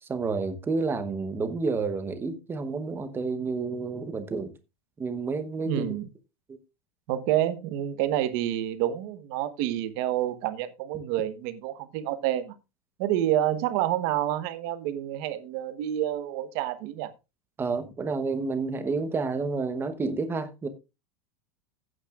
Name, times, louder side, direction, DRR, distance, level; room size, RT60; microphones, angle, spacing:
voice 1, 0.0-4.5 5.0-5.9 17.6-20.7, right 4 dB, 10° right, 0.9 m, -30 dB
voice 2, 5.7-6.1 7.1-12.5 13.0-17.1, right 12 dB, 40° right, 1.1 m, -28 dB
15.0 x 8.9 x 2.4 m
supercardioid pair, 170°, 19 cm